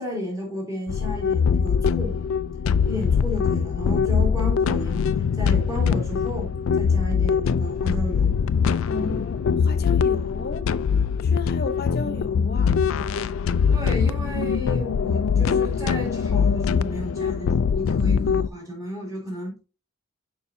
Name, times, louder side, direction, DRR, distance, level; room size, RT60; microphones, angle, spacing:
voice 1, 0.0-2.2 2.8-5.1 5.4-8.4 13.7-19.6, left 1 dB, 15° right, 2.9 m, -33 dB
sound 1, 0.9-18.5, left 6 dB, 75° left, 0.3 m, -22 dB
voice 2, 8.8-10.7 11.2-12.8, left 3 dB, 50° left, 0.8 m, -34 dB
7.0 x 5.4 x 2.6 m
head